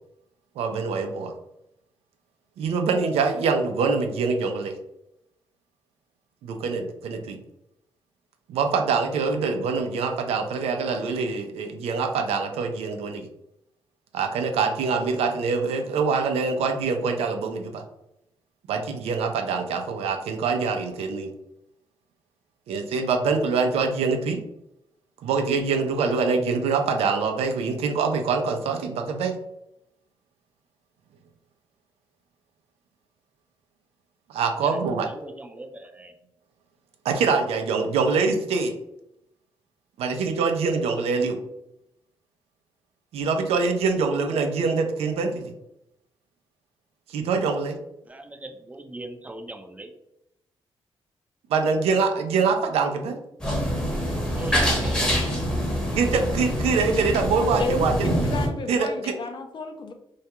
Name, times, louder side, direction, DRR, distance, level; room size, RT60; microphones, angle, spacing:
voice 1, 0.6-1.3 2.6-4.7 6.4-7.4 8.5-13.3 14.1-17.8 18.7-21.3 22.7-24.4 25.2-29.3 34.3-35.1 37.0-38.7 40.0-41.4 43.1-45.5 47.1-47.8 51.5-53.2 56.0-57.9 58.7-58.9, right 4 dB, 90° right, 5 dB, 0.4 m, -24 dB
voice 2, 35.1-36.1 48.0-49.9 54.4-55.0, right 1 dB, 15° right, 5 dB, 0.4 m, -39 dB
sound 1, 53.4-58.5, equal, 10° left, 0.8 m, -25 dB
voice 3, 57.6-59.9, left 4 dB, 50° left, 6 dB, 0.4 m, -31 dB
2.2 x 2.2 x 2.8 m, 0.83 s
cardioid pair, 80°, 10 cm